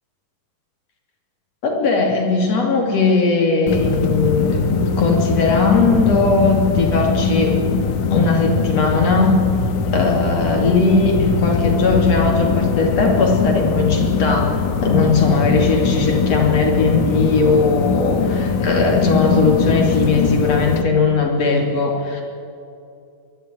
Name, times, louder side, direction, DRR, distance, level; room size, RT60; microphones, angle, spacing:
voice 1, 1.6-7.6 8.1-9.4 9.9-14.6 14.8-22.2, left 4 dB, 50° left, 1 dB, 3.6 m, -18 dB
sound 1, 3.7-20.8, left 5 dB, 65° left, 2.2 m, -21 dB
22.5 x 12.5 x 9.3 m, 2.6 s
omnidirectional pair, 4.0 m